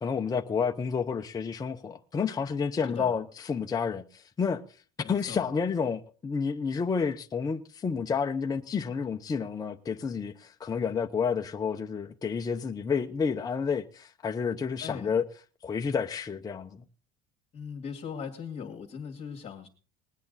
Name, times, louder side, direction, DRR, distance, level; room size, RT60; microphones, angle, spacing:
voice 1, 0.0-4.6 5.1-15.2 15.6-16.7, left 6 dB, 20° left, 0.7 m, -30 dB
voice 2, 2.8-3.2 5.0-5.5 14.8-15.1 17.5-19.7, left 6 dB, 35° left, 2.1 m, -39 dB
20.5 x 8.5 x 4.0 m
cardioid pair, 130°, 21 cm